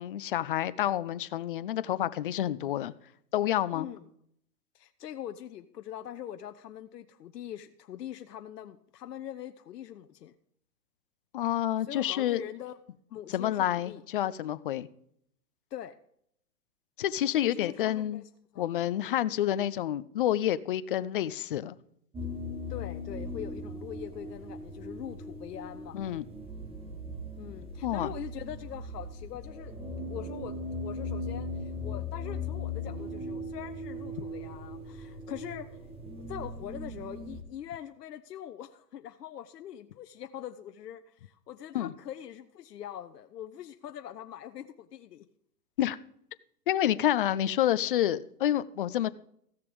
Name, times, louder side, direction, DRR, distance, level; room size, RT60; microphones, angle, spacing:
voice 1, 0.0-2.9 3.3-3.9 11.3-12.4 13.3-14.9 17.0-18.2 18.6-21.8 25.9-26.2 27.8-28.1 41.7-41.9 45.8-46.0 46.7-49.1, left 12 dB, 35° left, 0.4 m, -28 dB
voice 2, 3.7-4.1 4.7-10.4 11.8-12.8 13.1-14.0 15.7-16.0 17.3-18.7 22.7-26.0 27.4-29.8 30.1-35.8 36.2-45.3, left 10 dB, 80° left, 0.8 m, -43 dB
sound 1, 22.1-37.4, left 2 dB, 10° right, 1.5 m, -39 dB
14.5 x 6.7 x 5.2 m
hypercardioid pair, 135°, 47 cm